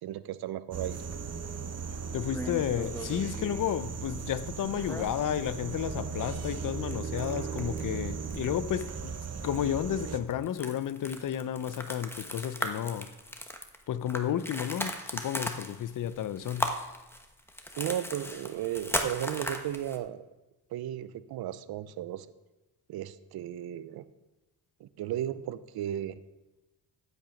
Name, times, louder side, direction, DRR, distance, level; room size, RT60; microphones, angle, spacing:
voice 1, 0.0-1.0 17.8-20.2 20.7-22.3 22.9-24.1 24.8-26.2, right 12 dB, 70° right, 0.7 m, -35 dB
sound 1, 0.7-10.2, right 6 dB, 40° right, 1.0 m, -37 dB
voice 2, 2.1-13.1 13.9-16.7, left 10 dB, 55° left, 0.7 m, -32 dB
sound 2, 2.3-3.7 4.8-5.5 5.8-6.0 6.4-7.9 8.2-8.5 8.8-9.1 9.5-9.6 10.0-20.0, equal, 5° left, 1.2 m, -37 dB
14.5 x 6.0 x 5.2 m
cardioid pair, 75°, 39 cm